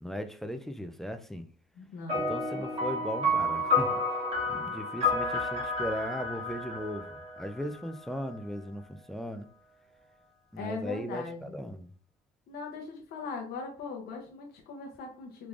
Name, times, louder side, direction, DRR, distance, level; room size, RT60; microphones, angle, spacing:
voice 1, 0.0-1.5 2.1-4.2 4.5-9.5 10.5-11.9, equal, ahead, 0.3 m, -37 dB
voice 2, 1.8-2.3 10.6-11.6 12.5-15.5, left 4 dB, 65° left, 0.7 m, -40 dB
sound 1, 2.1-7.9, left 2 dB, 35° right, 1.3 m, -30 dB
3.5 x 3.1 x 2.4 m
cardioid pair, 110°, 17 cm